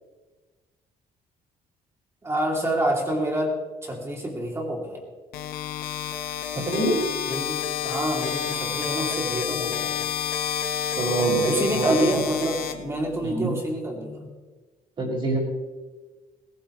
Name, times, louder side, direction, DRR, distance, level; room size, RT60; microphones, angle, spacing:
voice 1, 2.2-5.0 7.2-9.9 11.5-14.2, right 1 dB, 15° right, 0 dB, 3.0 m, -28 dB
sound 1, 5.3-13.3, left 9 dB, 80° left, 1.3 m, -29 dB
voice 2, 6.5-7.0 11.0-12.0 13.2-13.5 15.0-15.4, right 2 dB, 35° right, -3 dB, 5.8 m, -24 dB
20.0 x 18.5 x 3.2 m, 1.3 s
cardioid pair, 165°, 15 cm